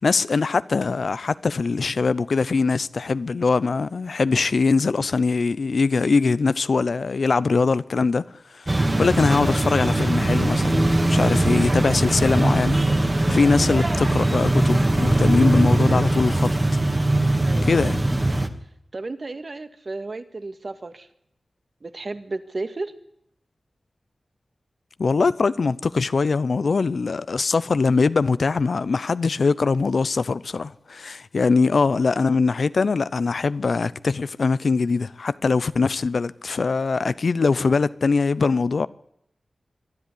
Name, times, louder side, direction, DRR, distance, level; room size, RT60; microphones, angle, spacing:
voice 1, 0.0-8.2 8.5-12.8 13.3-16.5 17.7-18.0 25.0-38.9, left 4 dB, 75° left, 0.8 m, -22 dB
sound 1, 8.7-18.5, right 1 dB, 35° right, 2.2 m, -20 dB
voice 2, 17.4-17.9 18.9-21.1 21.8-22.9, right 3 dB, 55° right, 1.9 m, -33 dB
24.0 x 12.5 x 10.0 m
cardioid pair, 50°, 0 cm